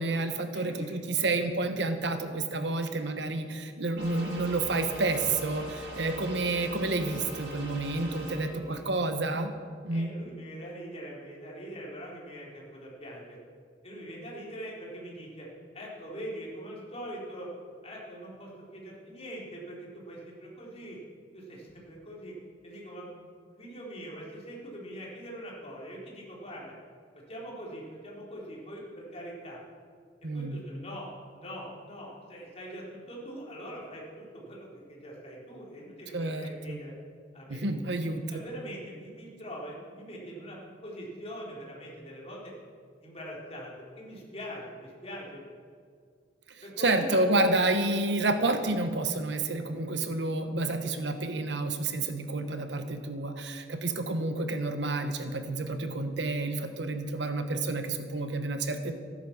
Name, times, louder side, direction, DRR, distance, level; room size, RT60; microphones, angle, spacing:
voice 1, 0.0-9.5 9.8-10.1 30.2-30.6 36.1-36.8 37.5-38.4 46.5-59.0, right 2 dB, 75° right, 8 dB, 1.2 m, -29 dB
voice 2, 0.5-1.0 8.4-8.8 9.9-13.4 13.8-15.5 15.7-17.5 17.8-21.0 21.3-22.4 22.6-23.2 23.6-26.7 27.3-29.6 30.3-36.9 37.3-37.6 38.0-42.5 43.0-45.4 46.6-47.2, equal, 35° left, -3 dB, 3.8 m, -43 dB
sound 1, 4.0-8.4, equal, 90° right, 5.1 m, -41 dB
14.0 x 10.5 x 7.2 m, 2.1 s
head